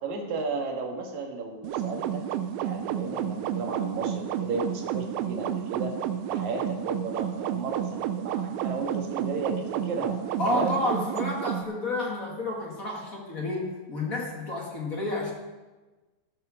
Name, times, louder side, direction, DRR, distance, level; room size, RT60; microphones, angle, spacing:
voice 1, 0.0-2.2 2.6-5.9 6.3-10.1 10.4-10.7, right 4 dB, 60° right, 1 dB, 2.9 m, -34 dB
sound 1, 1.6-11.6, right 10 dB, 85° right, 2.5 m, -31 dB
voice 2, 10.4-15.3, left 1 dB, 35° left, -1 dB, 1.4 m, -30 dB
14.5 x 7.7 x 6.4 m, 1.2 s
omnidirectional pair, 4.2 m